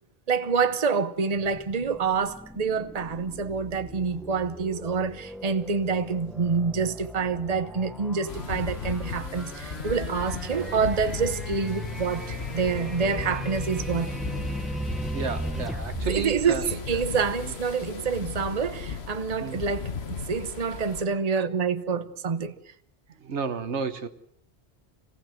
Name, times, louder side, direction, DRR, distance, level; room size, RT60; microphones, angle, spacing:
voice 1, 0.3-14.1 16.1-22.5, right 5 dB, 35° right, 1.0 m, -27 dB
sound 1, 1.3-17.6, equal, ahead, 1.1 m, -38 dB
sound 2, 8.3-21.0, left 5 dB, 70° left, 1.5 m, -36 dB
voice 2, 15.1-16.7 17.4-17.5 19.4-19.6 23.2-24.1, right 5 dB, 85° right, 1.5 m, -31 dB
27.0 x 18.0 x 7.8 m
omnidirectional pair, 1.1 m